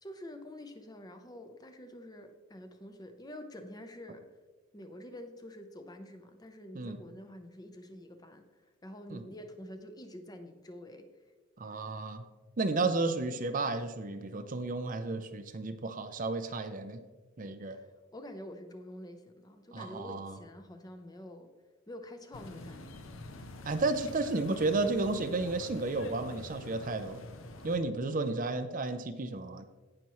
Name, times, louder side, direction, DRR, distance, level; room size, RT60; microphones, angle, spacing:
voice 1, 0.0-4.2 4.7-8.4 8.8-11.1 17.6-17.9 18.1-21.5 21.9-23.1, left 1 dB, 20° left, 7 dB, 0.7 m, -47 dB
voice 2, 11.6-12.2 12.6-17.0 17.4-17.8 19.7-20.4 23.6-27.2 27.6-29.6, right 3 dB, 40° right, 8 dB, 0.5 m, -32 dB
sound 1, 22.3-27.8, left 2 dB, 70° left, 0.8 m, -46 dB
17.5 x 5.9 x 3.1 m, 1.3 s
head